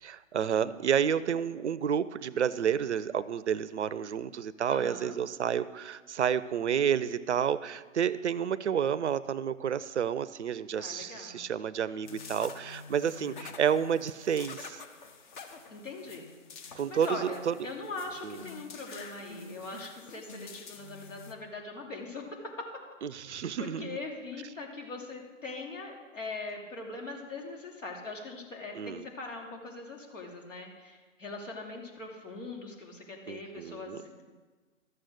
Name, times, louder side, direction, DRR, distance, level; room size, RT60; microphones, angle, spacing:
voice 1, 0.0-14.8 16.7-17.6 18.2-18.4 23.0-24.0 28.8-29.1 33.3-34.0, right 8 dB, 60° right, 17 dB, 0.6 m, -30 dB
voice 2, 4.7-5.2 10.8-11.4 13.2-13.4 15.7-16.3 16.6-22.2 23.2-34.3, left 3 dB, 65° left, 1 dB, 3.0 m, -41 dB
sound 1, 12.0-21.3, left 4 dB, 35° left, 1.1 m, -47 dB
12.5 x 7.7 x 6.5 m, 1.3 s
figure-of-eight pair, 135°, 40 cm